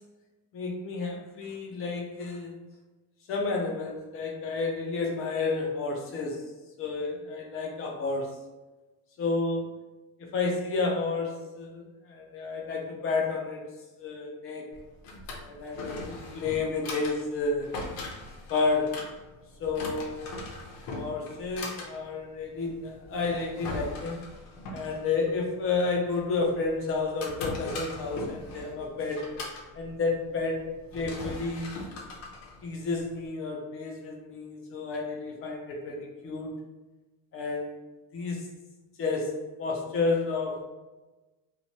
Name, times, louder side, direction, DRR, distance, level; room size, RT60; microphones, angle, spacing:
voice 1, 0.5-2.5 3.3-6.5 6.8-8.5 9.2-9.8 10.3-13.6 14.0-14.6 15.4-17.7 18.5-19.0 19.6-20.2 20.9-24.2 24.7-29.2 29.7-31.8 32.6-36.6 37.3-37.9 38.1-38.5 39.0-39.3 39.6-40.6, left 3 dB, 40° left, 0 dB, 0.4 m, -31 dB
Drawer open or close, 14.7-33.3, left 2 dB, 70° left, 0.8 m, -41 dB
2.9 x 2.1 x 2.7 m, 1.1 s
cardioid pair, 155°, 36 cm